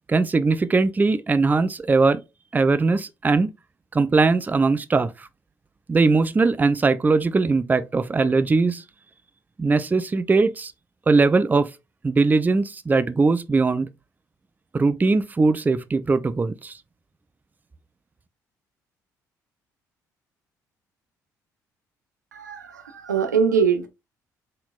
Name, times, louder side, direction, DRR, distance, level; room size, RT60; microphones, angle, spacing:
voice 1, 0.1-2.2 2.5-3.5 3.9-5.3 5.9-8.8 9.6-10.7 11.1-11.7 12.0-13.9 14.7-16.8, right 3 dB, 20° right, 0.5 m, -20 dB
voice 2, 22.3-23.9, right 6 dB, 80° right, 0.6 m, -22 dB
4.3 x 3.7 x 2.3 m
figure-of-eight pair, 45°, 9 cm